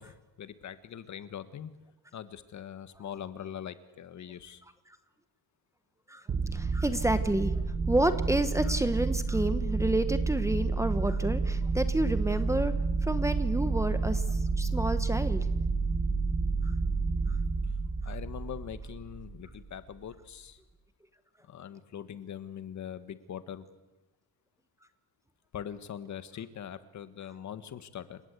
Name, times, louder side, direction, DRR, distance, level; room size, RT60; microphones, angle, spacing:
voice 1, 0.0-1.7 2.1-4.6 17.7-17.8 18.0-20.6 21.4-23.7 25.5-28.2, left 9 dB, 45° left, 12 dB, 1.4 m, -42 dB
voice 2, 6.1-12.7 13.0-15.5 16.6-16.7 17.3-17.4, right 1 dB, 10° right, 10 dB, 1.0 m, -30 dB
sound 1, 6.3-19.6, right 4 dB, 30° right, 1.2 m, -30 dB
29.0 x 17.5 x 8.2 m, 1.1 s
cardioid pair, 160°, 39 cm